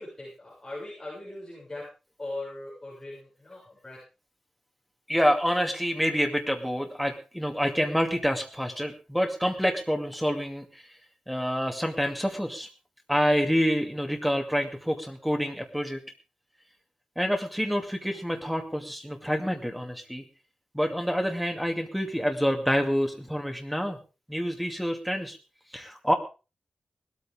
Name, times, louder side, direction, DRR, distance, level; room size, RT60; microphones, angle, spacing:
voice 1, 0.0-1.9 2.2-4.0, left 2 dB, 15° left, -7 dB, 7.6 m, -40 dB
voice 2, 5.1-10.9 11.3-12.7 13.1-16.0 17.2-20.2 20.7-24.0 24.3-25.4 25.7-26.1, equal, ahead, 3 dB, 2.4 m, -27 dB
19.0 x 13.5 x 3.8 m, 0.33 s
wide cardioid pair, 160°, 2 cm